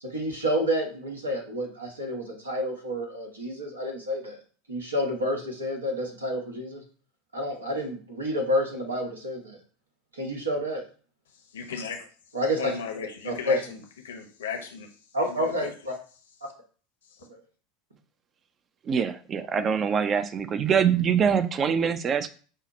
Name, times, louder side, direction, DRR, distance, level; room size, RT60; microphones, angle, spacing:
voice 1, 0.0-4.4 4.7-6.8 7.3-9.6 10.1-10.8 12.3-12.7 13.2-13.6 15.1-15.9 17.3-17.4, equal, 85° right, 1 dB, 1.1 m, -29 dB
voice 2, 11.5-12.1 12.6-14.9 15.2-15.7, left 6 dB, 70° left, 4 dB, 0.7 m, -36 dB
voice 3, 18.8-22.3, right 7 dB, 30° right, 12 dB, 0.4 m, -24 dB
5.5 x 2.1 x 4.0 m, 0.41 s
figure-of-eight pair, 80°, 0 cm